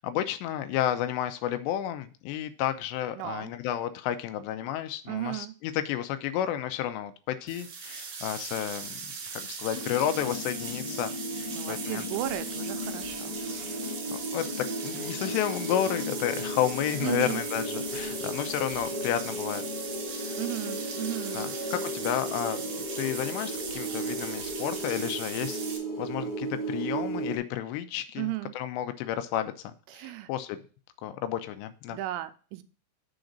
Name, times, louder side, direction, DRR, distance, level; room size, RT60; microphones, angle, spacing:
voice 1, 0.0-9.0 9.3-12.1 14.3-14.5 14.8-19.6 20.1-20.4 21.3-25.7 26.0-30.6 31.0-32.0, left 11 dB, 85° left, 9 dB, 2.5 m, -31 dB
voice 2, 3.2-3.5 5.1-5.5 11.5-13.8 17.0-17.4 20.4-21.5 28.2-28.5 29.9-30.3 31.9-32.6, right 16 dB, 85° right, 11 dB, 3.1 m, -35 dB
sound 1, 7.5-25.8, right 5 dB, 60° right, 2.8 m, -39 dB
sound 2, 9.7-27.4, equal, 20° right, 1.2 m, -35 dB
7.0 x 3.9 x 6.4 m, 0.37 s
omnidirectional pair, 5.6 m